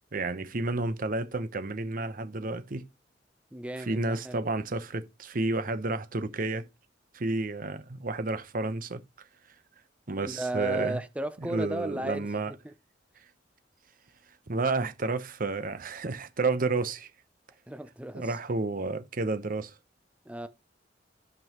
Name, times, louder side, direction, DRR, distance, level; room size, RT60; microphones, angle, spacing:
voice 1, 0.1-2.8 3.8-6.6 7.1-9.0 10.1-11.0 11.4-12.5 14.5-17.1 18.1-19.7, right 3 dB, 50° right, 0.8 m, -31 dB
voice 2, 3.5-4.4 10.2-12.7 17.7-18.4 20.3-20.5, right 2 dB, 5° right, 0.5 m, -35 dB
11.0 x 5.4 x 3.0 m
head